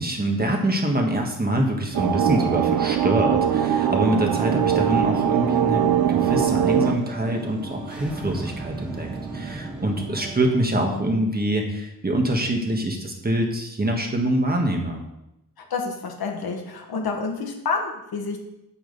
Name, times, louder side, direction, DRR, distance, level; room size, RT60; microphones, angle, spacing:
voice 1, 0.0-9.1 9.3-15.0, right 1 dB, 25° right, 2 dB, 1.4 m, -24 dB
sound 1, 1.9-7.0, right 9 dB, 90° right, 0.7 m, -21 dB
sound 2, 4.5-11.4, right 5 dB, 50° right, 1.1 m, -40 dB
sound 3, 4.7-10.7, equal, 5° right, 1.1 m, -38 dB
voice 2, 15.7-18.4, left 4 dB, 90° left, 2 dB, 1.7 m, -28 dB
8.7 x 8.7 x 4.0 m, 0.88 s
wide cardioid pair, 140°, 36 cm